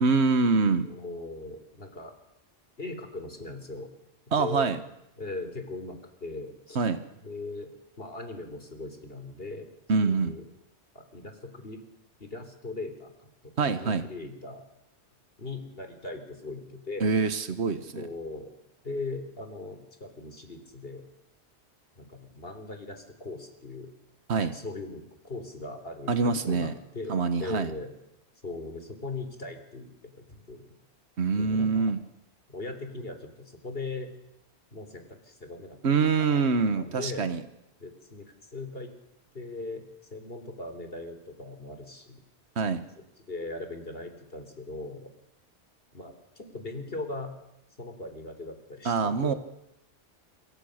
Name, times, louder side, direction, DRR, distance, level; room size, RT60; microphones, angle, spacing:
voice 1, 0.0-0.9 4.3-4.8 6.7-7.0 9.9-10.3 13.6-14.1 17.0-18.0 24.3-24.5 26.1-26.7 27.1-27.7 31.2-32.0 35.8-37.4 42.6-42.8 48.8-49.3, right 4 dB, 75° right, 10 dB, 1.6 m, -25 dB
voice 2, 0.8-2.1 2.8-3.9 4.4-4.7 5.2-6.9 7.2-9.7 10.0-10.5 10.9-11.8 12.2-14.6 15.4-17.1 18.0-18.5 18.8-21.0 22.0-23.9 24.4-27.9 28.4-30.8 31.3-31.9 32.5-34.1 34.7-36.4 36.7-37.3 37.8-38.9 39.3-39.8 40.1-42.2 43.3-45.1 45.9-47.3 47.8-49.4, left 2 dB, 60° left, 7 dB, 3.8 m, -39 dB
26.5 x 23.5 x 6.5 m, 0.85 s
omnidirectional pair, 1.1 m